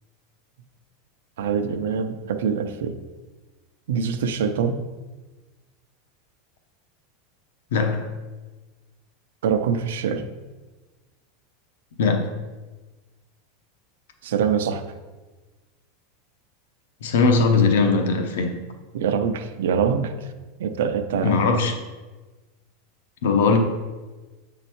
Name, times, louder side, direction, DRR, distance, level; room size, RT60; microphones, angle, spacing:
voice 1, 1.4-3.0 3.9-4.8 9.4-10.2 14.2-14.8 18.9-20.3 20.6-21.4, right 6 dB, 90° right, 0.6 m, -24 dB
voice 2, 7.7-8.1 12.0-12.3 17.0-18.6 21.2-21.7 23.2-23.6, left 4 dB, 80° left, 0.8 m, -20 dB
7.0 x 3.9 x 4.5 m
supercardioid pair, 175°, 0 cm